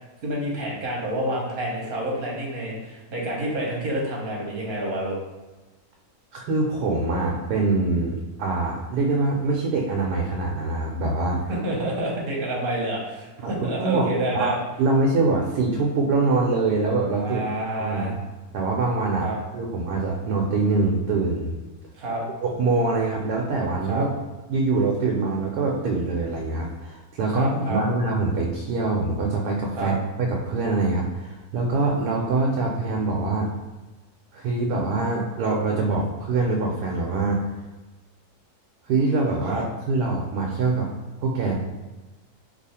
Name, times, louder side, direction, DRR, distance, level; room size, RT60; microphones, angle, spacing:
voice 1, 0.2-5.2 11.5-14.6 17.2-18.2 19.2-19.4 22.0-22.2 23.8-24.1 27.3-27.8 29.8-29.9 39.5-39.6, right 1 dB, 45° right, -3 dB, 0.9 m, -28 dB
voice 2, 6.3-11.4 13.4-13.5 13.8-14.1 14.3-14.5 14.8-18.1 18.5-21.6 22.4-24.2 24.5-33.5 34.3-37.4 38.8-40.9 41.2-41.6, right 3 dB, 85° right, -1 dB, 1.1 m, -24 dB
2.7 x 2.4 x 4.1 m, 1.2 s
omnidirectional pair, 1.7 m